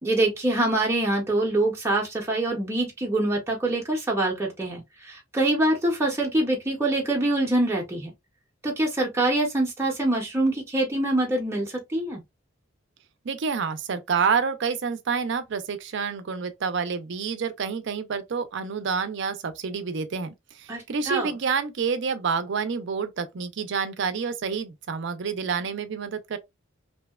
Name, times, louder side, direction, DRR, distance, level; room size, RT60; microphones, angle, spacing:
voice 1, 0.0-8.1 8.6-12.2 20.7-21.3, right 1 dB, 15° right, 0.6 m, -25 dB
voice 2, 13.2-26.4, right 5 dB, 60° right, 0.4 m, -28 dB
2.7 x 2.1 x 2.3 m
head